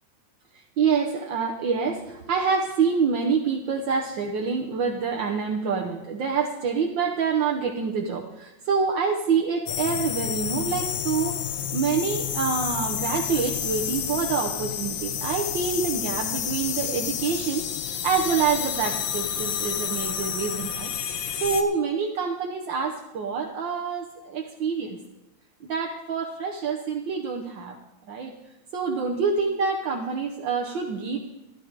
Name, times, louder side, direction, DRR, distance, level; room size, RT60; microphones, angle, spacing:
voice 1, 0.8-11.4 11.7-20.9 21.4-25.0 25.6-27.8 28.1-28.3 28.7-31.2, right 5 dB, 60° right, 1 dB, 1.3 m, -26 dB
sound 1, 9.7-21.6, left 9 dB, 65° left, 1.9 m, -30 dB
13.5 x 12.5 x 4.8 m, 0.94 s
omnidirectional pair, 3.3 m